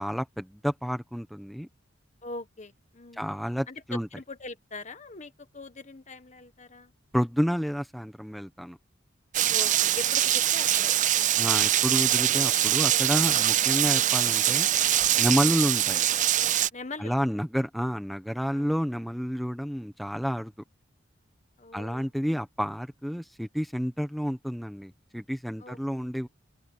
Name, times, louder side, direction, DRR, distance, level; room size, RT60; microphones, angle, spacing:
voice 1, 0.0-1.7 3.1-4.1 7.1-8.8 11.4-14.7 15.2-16.0 17.0-20.5 21.7-26.3, equal, ahead, 1.2 m, -29 dB
voice 2, 2.2-3.4 3.7-6.9 9.5-10.9 15.1-15.5 16.7-17.2 18.5-18.8 21.6-22.1 25.6-25.8, left 3 dB, 35° left, 1.5 m, -42 dB
Rain, 9.3-16.7, right 12 dB, 40° right, 0.5 m, -23 dB
head